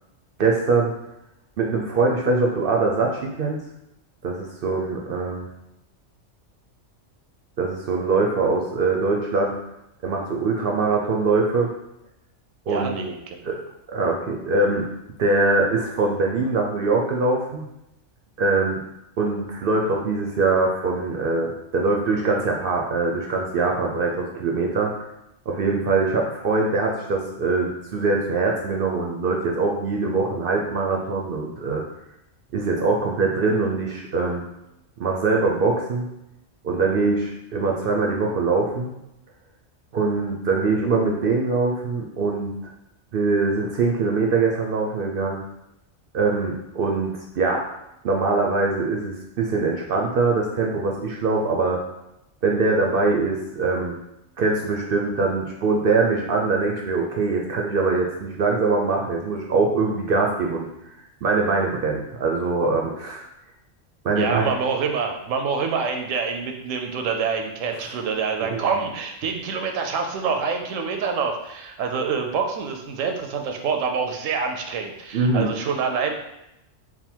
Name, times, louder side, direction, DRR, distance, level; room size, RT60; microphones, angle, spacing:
voice 1, 0.4-0.9 1.6-3.6 4.2-5.5 7.6-9.5 10.0-11.7 12.7-13.0 13.4-13.5 13.9-14.9 15.2-17.7 18.4-18.8 19.2-24.9 25.5-31.8 32.5-34.4 35.0-36.1 36.6-38.9 39.9-42.5 43.1-45.4 46.1-47.6 48.0-51.8 52.4-54.0 54.4-60.7 61.2-63.2 64.0-64.5 68.4-68.7 75.1-75.5, right 3 dB, 60° right, 0 dB, 0.6 m, -23 dB
voice 2, 12.7-13.4 64.2-76.1, right 5 dB, 85° right, 4 dB, 1.0 m, -26 dB
3.6 x 2.1 x 4.4 m, 0.87 s
omnidirectional pair, 1.3 m